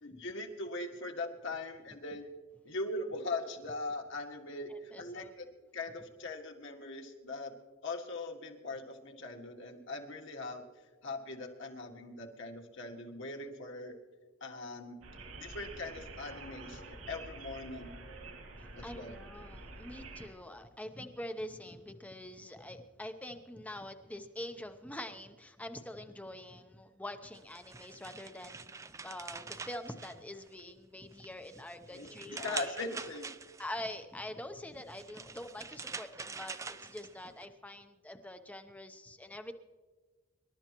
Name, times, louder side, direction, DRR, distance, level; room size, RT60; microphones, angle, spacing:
voice 1, 0.0-2.3 2.6-5.5 5.7-7.5 7.8-10.6 11.0-13.9 14.4-15.0 15.4-17.9 18.8-19.2 31.9-33.3, left 2 dB, 60° left, 2 dB, 1.9 m, -40 dB
voice 2, 4.7-5.3 18.6-32.8 33.6-39.5, left 1 dB, 5° left, 7 dB, 0.7 m, -45 dB
sound 1, 15.0-20.3, right 2 dB, 70° right, 2.5 m, -48 dB
sound 2, 27.3-30.7 31.1-33.8 34.7-37.5, right 4 dB, 15° right, 0.3 m, -45 dB
26.0 x 12.5 x 3.0 m, 1.3 s
head